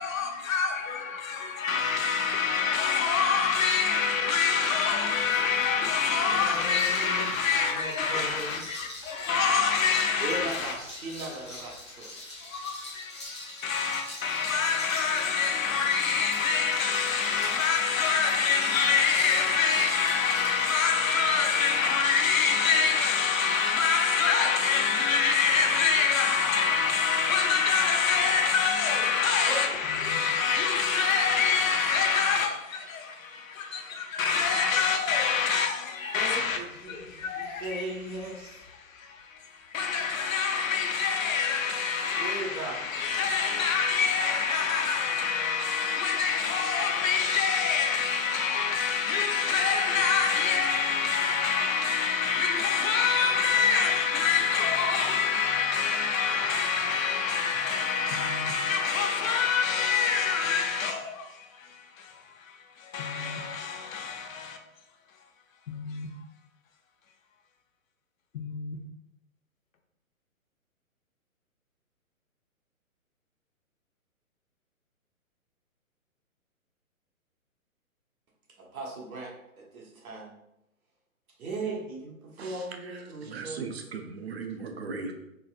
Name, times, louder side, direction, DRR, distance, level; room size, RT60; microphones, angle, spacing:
voice 1, 0.0-10.7 12.3-36.6 36.8-37.8 38.8-64.6 65.7-66.1 68.3-68.8, left 6 dB, 70° left, 0.7 m, -26 dB
sound 1, 4.9-20.9, left 1 dB, 20° left, 0.4 m, -44 dB
voice 2, 6.3-7.3 7.7-8.9 10.2-12.1 29.4-29.9 36.1-38.6 42.1-42.8 78.6-80.3 81.4-83.7, right 2 dB, 75° right, 1.2 m, -38 dB
voice 3, 82.4-85.1, right 4 dB, 50° right, 0.5 m, -38 dB
4.0 x 2.3 x 2.4 m
hypercardioid pair, 155°, 42 cm